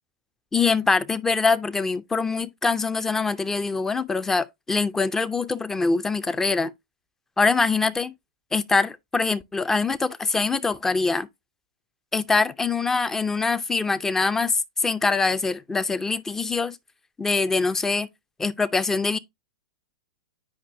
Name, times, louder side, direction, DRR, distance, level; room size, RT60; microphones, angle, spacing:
voice 1, 0.5-6.7 7.4-8.1 8.5-11.3 12.1-16.8 17.2-18.1 18.4-19.2, left 4 dB, 10° left, 0.5 m, -24 dB
8.6 x 5.3 x 2.7 m
figure-of-eight pair, 100°, 4 cm